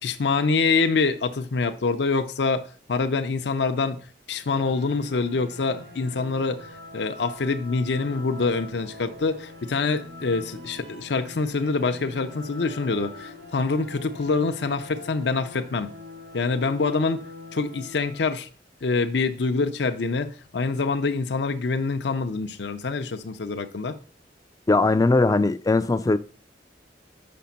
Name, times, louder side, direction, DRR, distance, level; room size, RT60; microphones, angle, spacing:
voice 1, 0.0-15.9 16.3-17.2 17.5-18.5 18.8-24.0, left 4 dB, 70° left, 0.5 m, -25 dB
sound 1, 4.5-18.4, left 2 dB, 80° right, 2.9 m, -43 dB
voice 2, 24.7-26.2, left 2 dB, 20° left, 0.3 m, -20 dB
5.8 x 5.2 x 5.8 m
head